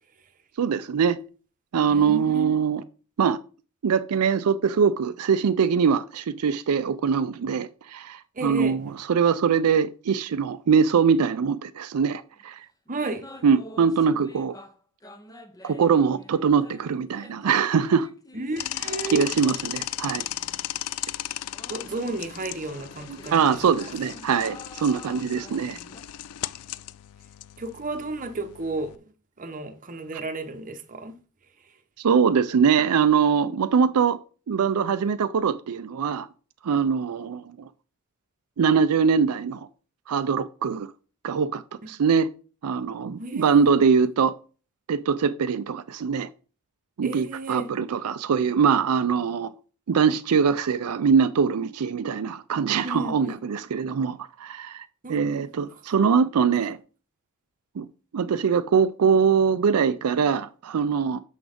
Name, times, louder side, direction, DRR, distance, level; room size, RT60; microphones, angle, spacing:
voice 1, 0.6-1.2 1.7-2.8 3.2-3.4 3.8-12.7 13.4-14.5 15.6-18.1 19.1-20.2 23.3-25.8 32.0-34.2 34.5-36.3 36.6-37.7 38.6-39.7 40.1-40.9 41.2-42.3 42.6-44.3 44.9-46.3 47.0-49.5 49.9-56.8 57.8-57.9 58.1-61.2, right 6 dB, 85° right, 0.4 m, -22 dB
voice 2, 1.9-2.6 8.3-8.8 12.9-13.3 18.3-19.3 21.7-23.7 25.7-26.0 27.6-31.2 43.2-43.6 47.0-47.7 52.8-53.4 55.0-55.5, right 2 dB, 35° right, 0.9 m, -33 dB
sound 1, 12.4-12.5 12.9-14.8 15.0-20.9 21.5-26.0, left 1 dB, 15° left, 0.7 m, -47 dB
sound 2, 18.6-29.0, left 14 dB, 85° left, 0.3 m, -36 dB
6.1 x 6.0 x 5.0 m
head